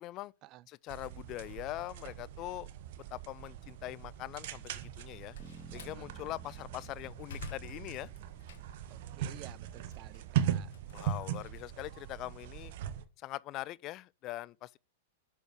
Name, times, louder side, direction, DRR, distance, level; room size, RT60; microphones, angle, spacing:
voice 1, 0.0-0.3 0.7-2.7 3.1-5.4 5.7-8.1 10.9-12.7 13.2-14.8, left 16 dB, 40° left, 0.3 m, -42 dB
sound 1, 0.9-13.0, right 10 dB, 60° right, 0.8 m, -39 dB
Slam, 4.9-6.0 6.6-8.9 9.4-11.7, left 5 dB, 70° left, 1.4 m, -51 dB
Bass guitar, 5.4-9.8, right 2 dB, 10° right, 1.8 m, -56 dB
voice 2, 8.9-10.7, right 15 dB, 40° right, 0.4 m, -53 dB
6.5 x 5.6 x 5.9 m
hypercardioid pair, 110°, 0 cm